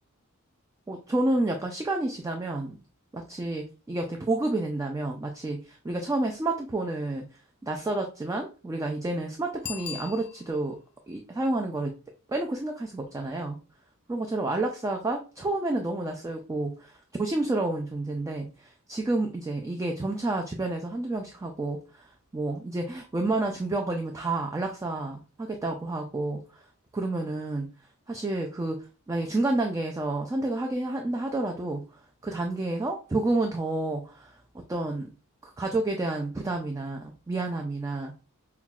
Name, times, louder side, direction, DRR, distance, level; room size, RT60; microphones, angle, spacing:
voice 1, 0.9-2.8 3.1-10.8 11.1-11.9 12.3-13.6 14.1-26.7 26.9-27.7 28.1-35.1 35.4-38.1, right 2 dB, 15° right, 2 dB, 0.3 m, -30 dB
Bicycle bell, 9.6-10.8 16.2-16.3, left 8 dB, 50° left, 0.4 m, -39 dB
5.6 x 2.2 x 2.3 m, 0.35 s
head